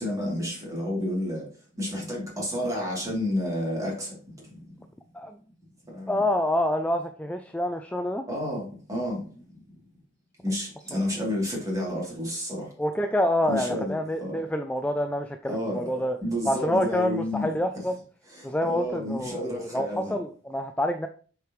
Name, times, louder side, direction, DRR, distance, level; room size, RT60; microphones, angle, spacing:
voice 1, 0.0-1.4 1.7-4.2 5.8-6.2 8.3-9.2 10.4-12.7 13.5-13.9 14.2-14.4 15.5-15.9 16.2-17.5 18.3-20.2, left 1 dB, 20° right, 2.8 m, -30 dB
voice 2, 6.1-8.2 10.9-11.1 12.8-16.2 16.5-18.0 18.4-21.1, left 1 dB, 5° left, 0.3 m, -27 dB
8.1 x 4.8 x 3.1 m
head